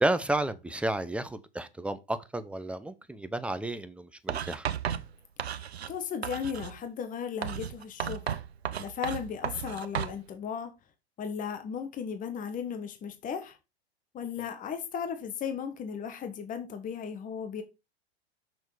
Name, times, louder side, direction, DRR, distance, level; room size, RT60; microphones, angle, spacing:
voice 1, 0.0-4.7, right 1 dB, 5° right, 0.6 m, -31 dB
Writing, 4.3-6.0 6.2-6.8 7.4-10.2, right 9 dB, 85° right, 0.7 m, -34 dB
voice 2, 5.6-8.4 8.8-10.7 11.2-13.6 14.1-17.6, left 7 dB, 25° left, 1.3 m, -36 dB
6.2 x 6.2 x 4.9 m
hypercardioid pair, 100°, 31 cm